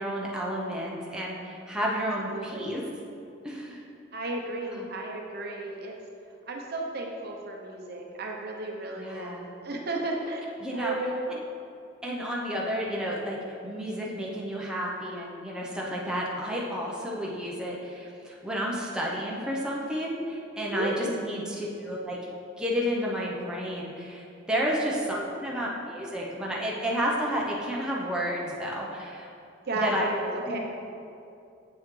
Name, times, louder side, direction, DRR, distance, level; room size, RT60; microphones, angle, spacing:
voice 1, 0.0-2.8 3.4-3.8 4.7-4.9 9.0-9.5 10.6-10.9 12.0-13.4 13.6-22.2 22.6-29.3 29.8-30.0 30.5-30.6, equal, 5° right, -4 dB, 0.7 m, -31 dB
voice 2, 2.3-2.7 4.1-6.0 6.5-10.4 10.7-11.4 20.6-21.3 24.9-25.6 29.6-30.6, right 2 dB, 55° right, 0 dB, 0.7 m, -34 dB
7.8 x 5.5 x 3.2 m, 2.5 s
head